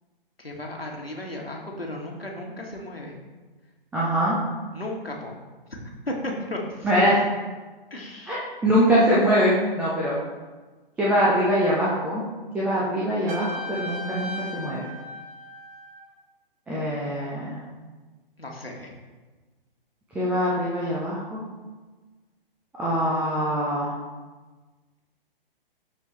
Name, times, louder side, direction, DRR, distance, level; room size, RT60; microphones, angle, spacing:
voice 1, 0.4-3.1 4.7-5.4 6.1-6.9 7.9-8.5 18.4-18.9, left 1 dB, 85° left, -1 dB, 1.7 m, -35 dB
voice 2, 3.9-4.4 6.8-7.1 8.3-10.2 11.0-12.2 12.5-14.8 16.7-17.6 20.1-21.4 22.8-23.9, equal, 5° right, -7 dB, 0.5 m, -23 dB
Trumpet, 13.3-16.1, left 2 dB, 35° right, 1.6 m, -37 dB
13.0 x 4.5 x 3.1 m, 1.3 s
figure-of-eight pair, 125°, 29 cm